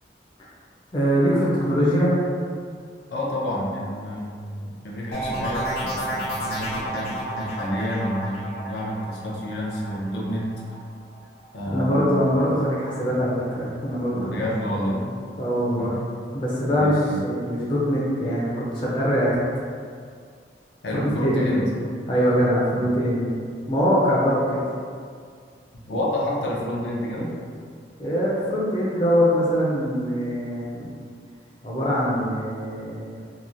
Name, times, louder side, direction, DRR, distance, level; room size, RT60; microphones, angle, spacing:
voice 1, 0.9-2.2 11.7-14.4 14.7-15.1 15.4-16.0 16.3-19.3 20.9-23.3 23.7-24.6 28.0-30.9 31.6-33.2, equal, 30° left, -7 dB, 0.4 m, -23 dB
voice 2, 3.1-10.5 11.5-12.3 14.1-15.0 15.8-15.9 16.6-17.2 20.8-21.6 22.7-22.8 25.7-27.3, equal, 80° left, -5 dB, 0.5 m, -29 dB
sound 1, 5.1-10.7 11.1-11.6, equal, 65° left, 1.2 m, -31 dB
2.9 x 2.1 x 2.5 m, 2.1 s
head